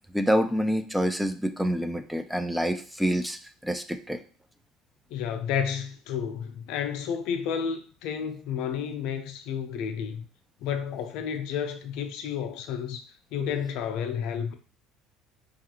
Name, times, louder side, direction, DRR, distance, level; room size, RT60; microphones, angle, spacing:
voice 1, 0.1-4.2 9.7-9.9 13.4-13.5, equal, 5° right, 0.3 m, -27 dB
voice 2, 5.1-10.2 10.6-14.5, left 7 dB, 70° left, 0.4 m, -31 dB
2.4 x 2.4 x 2.8 m
supercardioid pair, 90°, 0 cm